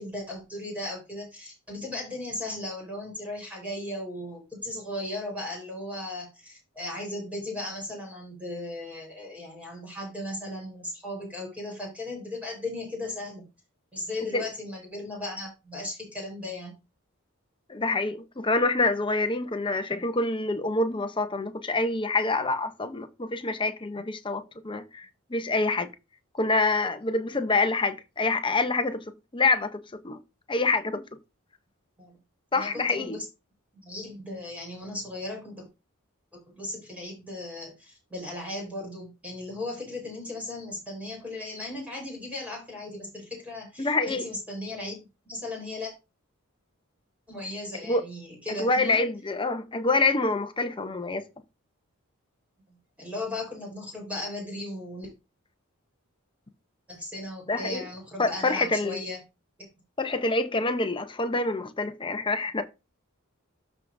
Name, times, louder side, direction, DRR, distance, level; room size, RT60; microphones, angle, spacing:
voice 1, 0.0-13.4 13.9-16.7 32.0-32.2 32.5-33.2 33.8-35.6 36.3-45.0 45.2-45.9 47.3-49.0 52.7-55.1 56.9-59.2, left 2 dB, 5° right, 4.3 m, -36 dB
voice 2, 17.7-25.9 26.4-29.0 29.3-30.2 30.5-31.0 32.5-33.2 43.8-44.3 47.9-48.0 48.6-51.2 57.5-57.8 58.2-59.0 60.0-62.6, left 3 dB, 25° left, 0.8 m, -26 dB
13.0 x 4.7 x 2.7 m
head